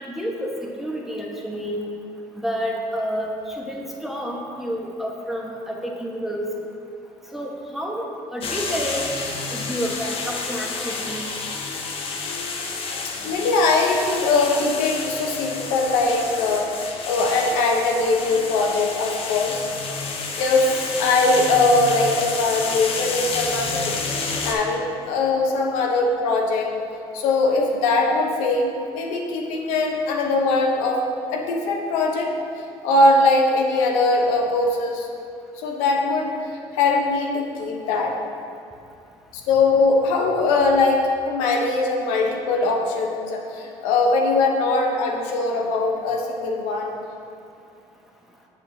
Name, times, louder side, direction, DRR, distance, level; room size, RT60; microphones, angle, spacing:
voice 1, 0.0-1.8 2.3-6.5 7.3-8.0 8.3-9.1 9.5-11.2, equal, ahead, -2 dB, 1.1 m, -29 dB
sound 1, 8.4-24.5, left 4 dB, 55° left, 0.9 m, -30 dB
voice 2, 13.2-19.6 20.4-26.7 27.1-31.0 31.3-32.3 32.8-35.1 35.6-36.3 36.8-38.2 39.5-47.0, left 3 dB, 85° left, 0 dB, 0.8 m, -21 dB
7.2 x 6.5 x 2.8 m, 2.5 s
supercardioid pair, 85°, 12 cm